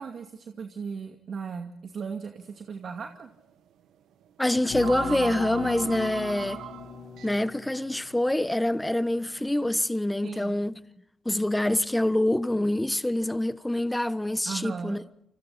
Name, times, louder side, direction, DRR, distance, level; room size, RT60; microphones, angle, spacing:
voice 1, 0.0-3.3 10.2-10.6 14.4-15.0, right 5 dB, 50° right, 2.3 m, -37 dB
sound 1, 2.4-2.7 3.0-3.1 4.2-4.3 4.6-9.8, right 10 dB, 80° right, 1.8 m, -42 dB
voice 2, 4.4-6.6 7.2-10.7 11.2-15.0, left 1 dB, 10° left, 1.1 m, -26 dB
sound 2, 4.7-8.2, left 7 dB, 55° left, 2.3 m, -37 dB
29.5 x 25.5 x 4.3 m
cardioid pair, 90°, 0 cm